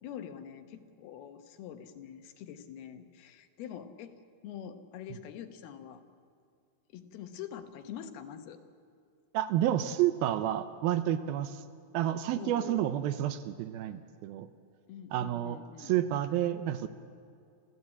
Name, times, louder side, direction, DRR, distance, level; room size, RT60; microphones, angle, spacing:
voice 1, 0.0-4.2 4.4-6.0 6.9-8.6 12.4-12.9 14.9-15.9, left 9 dB, 75° left, 8 dB, 3.0 m, -45 dB
voice 2, 9.3-11.6 11.9-14.5 15.1-16.9, right 12 dB, 80° right, 11 dB, 2.4 m, -30 dB
28.0 x 14.5 x 8.6 m, 2.3 s
omnidirectional pair, 4.6 m